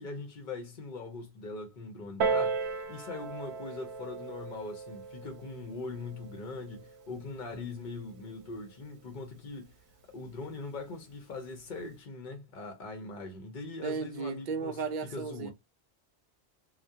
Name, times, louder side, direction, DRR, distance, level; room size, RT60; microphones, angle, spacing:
voice 1, 0.0-9.8 10.1-14.8 15.1-15.5, left 3 dB, 55° left, 0.8 m, -41 dB
Piano, 2.2-7.4 8.2-8.3, right 4 dB, 85° right, 0.9 m, -35 dB
voice 2, 13.8-15.5, right 5 dB, 55° right, 0.6 m, -34 dB
2.3 x 2.1 x 2.6 m
omnidirectional pair, 1.1 m